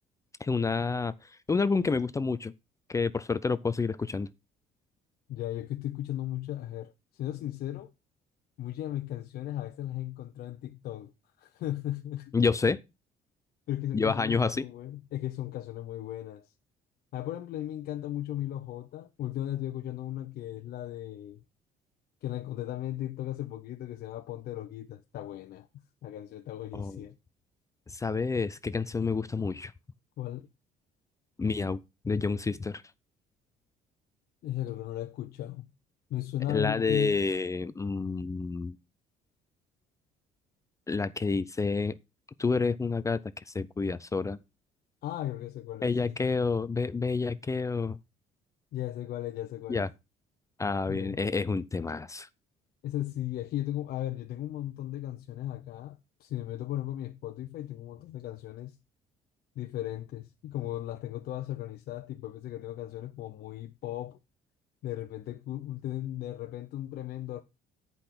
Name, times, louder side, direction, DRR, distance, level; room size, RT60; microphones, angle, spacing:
voice 1, 0.4-1.1 1.5-2.5 2.9-4.3 12.3-12.8 13.9-14.6 26.7-27.0 27.9-29.7 31.4-31.8 32.0-32.8 36.5-38.8 40.9-41.9 42.4-43.2 43.5-44.4 45.8-48.0 49.7-49.9 50.6-52.3, left 4 dB, 20° left, 0.5 m, -29 dB
voice 2, 5.3-7.9 8.6-11.1 11.4-12.3 13.7-16.5 17.1-21.4 22.2-27.2 30.2-30.5 34.4-35.7 36.1-37.2 45.0-46.2 48.7-49.9 50.9-51.2 52.8-58.8 59.6-64.2 64.8-67.4, left 13 dB, 65° left, 0.7 m, -36 dB
8.1 x 5.3 x 5.9 m
cardioid pair, 110°, 17 cm